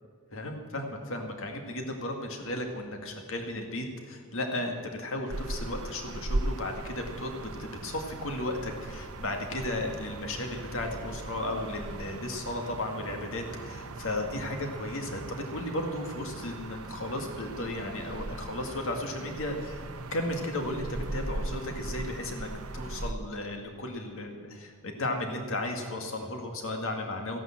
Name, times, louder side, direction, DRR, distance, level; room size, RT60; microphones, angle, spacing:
voice 1, 0.3-7.3 7.6-19.8 20.1-27.4, left 1 dB, 65° left, 4 dB, 2.1 m, -34 dB
sound 1, 5.3-23.1, right 2 dB, 75° right, 0.8 m, -39 dB
16.0 x 11.0 x 7.3 m, 2.1 s
head